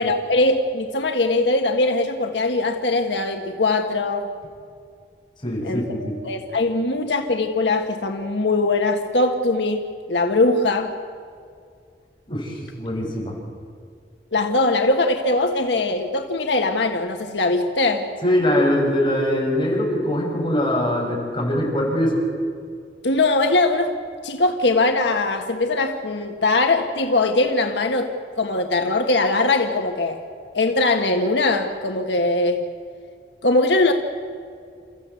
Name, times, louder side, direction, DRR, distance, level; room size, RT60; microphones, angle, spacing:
voice 1, 0.0-4.3 5.6-10.9 14.3-18.1 23.0-23.9 24.2-28.1 28.4-30.2 30.5-32.6 33.4-33.9, left 2 dB, 85° left, 4 dB, 1.5 m, -21 dB
voice 2, 5.4-6.1 12.3-13.4 18.2-22.2, left 1 dB, 25° left, -3 dB, 6.7 m, -22 dB
29.0 x 14.5 x 8.4 m, 2.3 s
head